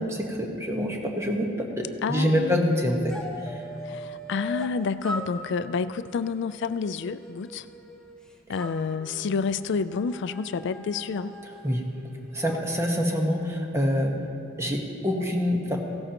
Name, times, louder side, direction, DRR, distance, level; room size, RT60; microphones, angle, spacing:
voice 1, 0.0-3.6 11.6-11.8 12.3-14.1 14.6-15.8, equal, 15° right, 1 dB, 1.2 m, -26 dB
voice 2, 2.0-2.7 3.8-7.7 8.5-11.3, left 5 dB, 65° left, 13 dB, 0.4 m, -29 dB
sound 1, 3.1-4.7 5.0-8.1 8.5-12.6, left 1 dB, 5° left, 0.9 m, -40 dB
16.5 x 13.0 x 2.9 m, 2.9 s
head